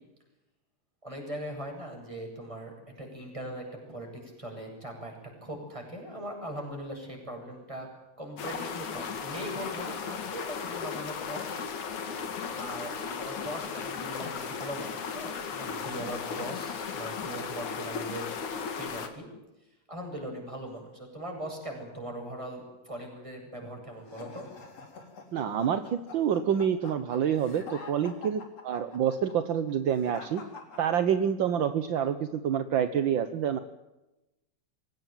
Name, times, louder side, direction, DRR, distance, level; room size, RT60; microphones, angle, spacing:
voice 1, 1.0-5.1 5.4-7.9 8.2-11.5 12.5-18.3 18.7-19.3 19.9-24.4, right 1 dB, 10° right, 1 dB, 8.1 m, -40 dB
sound 1, 8.4-19.1, left 6 dB, 85° left, 3.8 m, -36 dB
sound 2, 24.1-31.5, left 4 dB, 60° left, 4.5 m, -46 dB
voice 2, 25.3-30.4 30.8-33.6, right 8 dB, 60° right, 10 dB, 1.3 m, -27 dB
24.0 x 18.0 x 9.1 m, 1.0 s
omnidirectional pair, 3.3 m